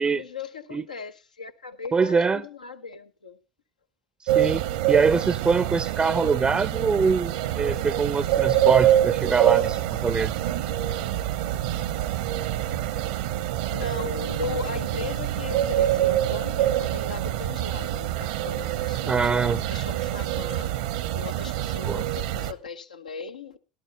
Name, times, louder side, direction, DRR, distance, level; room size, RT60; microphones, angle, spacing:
voice 1, 0.0-3.4 13.7-19.3 19.7-20.8 21.1-23.6, left 4 dB, 85° left, 0.9 m, -37 dB
voice 2, 1.9-2.4 4.3-10.3 19.1-19.6 21.8-22.0, right 5 dB, 20° right, 0.5 m, -23 dB
sound 1, 4.3-22.5, right 13 dB, 70° right, 0.8 m, -26 dB
sound 2, 7.4-19.3, right 7 dB, 85° right, 1.1 m, -41 dB
18.5 x 11.5 x 2.9 m
hypercardioid pair, 75°, 4 cm